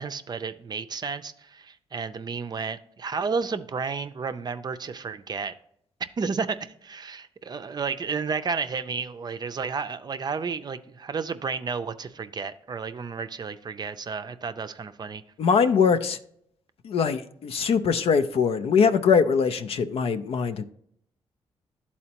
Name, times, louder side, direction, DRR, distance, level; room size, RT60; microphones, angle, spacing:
voice 1, 0.0-5.5 6.0-15.2, right 5 dB, 40° right, 0.5 m, -32 dB
voice 2, 15.4-16.2 16.8-20.6, left 6 dB, 70° left, 0.5 m, -22 dB
11.0 x 4.2 x 2.9 m
cardioid pair, 70°, 10 cm